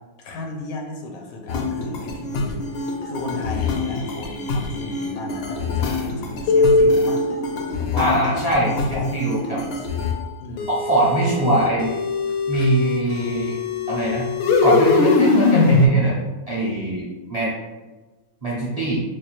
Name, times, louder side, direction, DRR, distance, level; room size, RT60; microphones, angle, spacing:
voice 1, 0.2-7.2 7.8-8.3 8.7-9.1 9.7-9.8 10.4-10.7 11.4-11.5, left 3 dB, 80° left, 2 dB, 1.1 m, -34 dB
sound 1, 1.5-10.2 10.6-15.9, left 3 dB, 65° left, 0.6 m, -22 dB
voice 2, 8.0-9.6 10.7-11.9 12.5-13.6 13.9-14.3 14.6-16.2 16.5-17.0 17.3-17.5 18.4-19.0, right 1 dB, 55° right, -6 dB, 0.4 m, -22 dB
4.2 x 2.3 x 3.0 m, 1.2 s
omnidirectional pair, 1.5 m